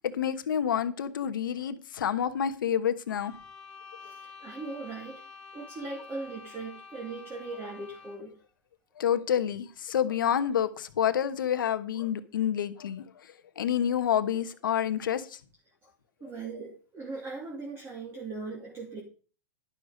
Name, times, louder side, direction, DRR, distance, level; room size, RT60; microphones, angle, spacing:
voice 1, 0.0-3.3 9.0-15.4, left 9 dB, 90° left, 1.2 m, -28 dB
sound 1, 3.1-8.3, left 5 dB, 5° left, 1.9 m, -48 dB
voice 2, 4.0-5.2 5.5-8.4 16.2-19.0, right 3 dB, 20° right, 2.7 m, -39 dB
11.5 x 6.7 x 5.1 m
hypercardioid pair, 135°, 11 cm